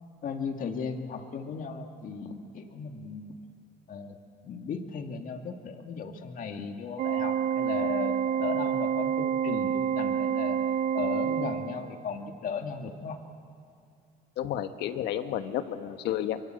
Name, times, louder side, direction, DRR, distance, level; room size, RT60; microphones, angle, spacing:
voice 1, 0.2-3.4 3.9-4.2 4.4-10.6 10.9-13.2, left 5 dB, 55° left, 5 dB, 2.1 m, -36 dB
Organ, 7.0-12.0, right 8 dB, 55° right, 0.7 m, -28 dB
voice 2, 14.4-16.4, left 11 dB, 80° left, 9 dB, 1.3 m, -31 dB
24.5 x 23.0 x 7.7 m, 2.4 s
cardioid pair, 110°, 17 cm